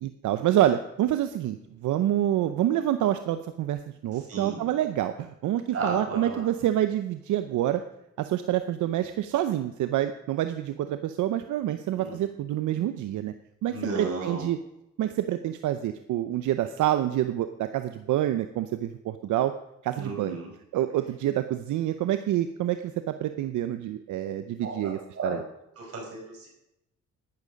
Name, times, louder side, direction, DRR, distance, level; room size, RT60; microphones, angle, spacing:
voice 1, 0.0-7.8 8.2-13.3 13.6-14.6 15.0-19.5 19.8-20.4 20.7-25.4, right 12 dB, 80° right, 10 dB, 0.7 m, -27 dB
voice 2, 4.1-4.6 5.7-6.5 11.9-12.1 13.7-14.5 19.9-20.5 24.6-25.4 25.8-26.5, right 3 dB, 50° right, 0 dB, 5.3 m, -34 dB
12.0 x 11.0 x 5.2 m, 0.82 s
cardioid pair, 90°, 30 cm